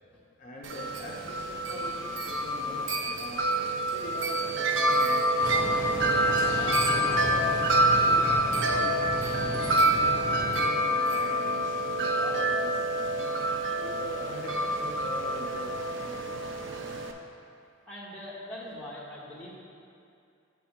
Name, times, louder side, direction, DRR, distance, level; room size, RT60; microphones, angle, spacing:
voice 1, 0.4-3.5 3.9-5.8 6.5-7.5 7.8-13.4 13.8-16.4, left 1 dB, 40° left, -4 dB, 0.6 m, -43 dB
Wind chime, 0.6-17.1, right 1 dB, 60° right, 0.5 m, -27 dB
sound 1, 5.4-10.6, right 1 dB, 20° right, 1.7 m, -35 dB
voice 2, 17.9-19.6, left 1 dB, 5° left, -8 dB, 1.2 m, -42 dB
7.6 x 3.4 x 5.9 m, 2.5 s
head